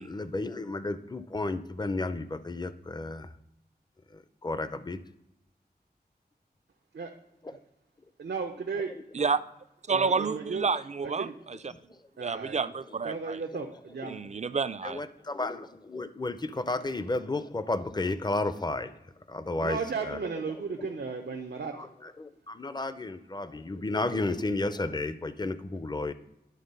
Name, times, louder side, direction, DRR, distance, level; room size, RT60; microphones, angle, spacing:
voice 1, 0.0-3.3 4.1-5.0 8.9-9.0 11.7-11.8 13.5-13.7 14.0-14.2 14.8-19.0 19.3-20.2 20.5-20.9 21.7-26.1, left 2 dB, 25° left, 0.5 m, -33 dB
voice 2, 8.2-8.9 9.9-10.6 11.2-11.3 12.2-12.6 13.0-14.2 19.6-21.8, right 5 dB, 85° right, 0.6 m, -35 dB
voice 3, 9.9-11.7 12.2-13.4 14.1-15.0, right 5 dB, 40° right, 0.4 m, -30 dB
11.0 x 3.9 x 5.3 m
wide cardioid pair, 60°, 17 cm